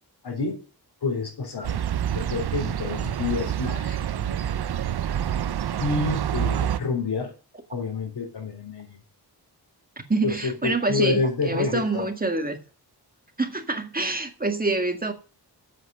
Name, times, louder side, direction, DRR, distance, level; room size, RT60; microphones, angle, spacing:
voice 1, 0.2-0.6 1.0-1.8 2.1-4.5 5.8-7.3 7.7-9.0 10.2-12.1, left 4 dB, 85° left, 4.0 m, -28 dB
sound 1, 1.6-6.8, right 10 dB, 75° right, 0.7 m, -27 dB
voice 2, 10.1-12.6 13.4-15.1, right 3 dB, 20° right, 1.9 m, -26 dB
8.2 x 7.9 x 8.0 m
wide cardioid pair, 160°, 39 cm